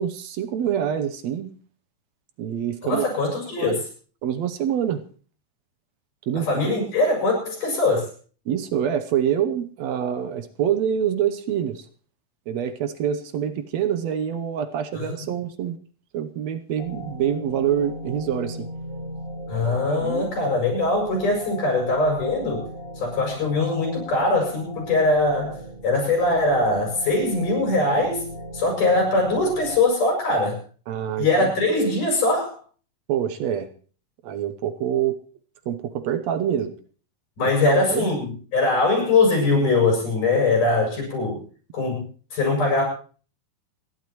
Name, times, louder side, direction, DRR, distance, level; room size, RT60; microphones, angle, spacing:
voice 1, 0.0-1.5 2.4-3.1 3.6-3.8 4.2-5.0 6.3-6.5 8.5-11.9 12.5-15.8 16.1-18.7 19.7-20.3 30.9-31.5 33.1-33.7 34.2-35.2 35.7-36.7 37.7-38.1, right 9 dB, 70° right, 9 dB, 1.8 m, -26 dB
voice 2, 2.8-3.8 6.4-8.1 14.9-15.3 19.5-22.6 23.0-25.6 25.8-28.2 28.5-30.6 31.2-32.6 37.4-41.4 41.7-42.8, left 2 dB, 80° left, 0 dB, 8.9 m, -22 dB
sound 1, 16.8-29.8, equal, 20° right, 3.3 m, -37 dB
28.5 x 11.5 x 3.1 m, 0.41 s
omnidirectional pair, 3.7 m